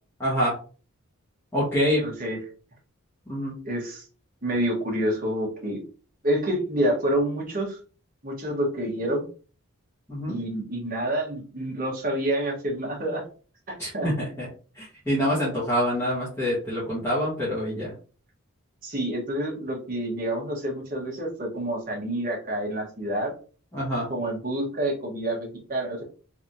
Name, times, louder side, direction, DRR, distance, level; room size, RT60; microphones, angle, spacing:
voice 1, 0.2-0.5 1.5-2.0 3.3-3.6 10.1-10.4 13.8-14.5 14.7-17.9 23.7-24.1, equal, 10° left, -9 dB, 1.4 m, -26 dB
voice 2, 2.0-2.4 3.6-4.1 4.4-5.8 6.2-7.8 8.2-9.2 10.3-13.2 13.7-14.1 18.8-23.3 24.1-26.0, right 1 dB, 40° right, -2 dB, 1.3 m, -28 dB
3.4 x 3.3 x 2.7 m, 0.39 s
head